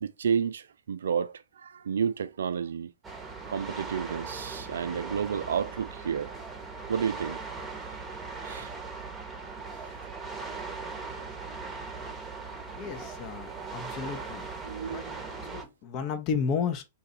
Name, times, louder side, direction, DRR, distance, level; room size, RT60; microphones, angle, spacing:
voice 1, 0.0-2.9 3.5-6.3 6.9-7.4 8.4-8.7 14.6-15.2, right 7 dB, 75° right, 0.4 m, -31 dB
sound 1, 3.0-15.6, right 4 dB, 10° right, 0.8 m, -39 dB
voice 2, 12.7-14.5 14.9-15.0 15.5-16.9, left 6 dB, 40° left, 0.7 m, -32 dB
2.8 x 2.3 x 4.2 m
hypercardioid pair, 110°, 0 cm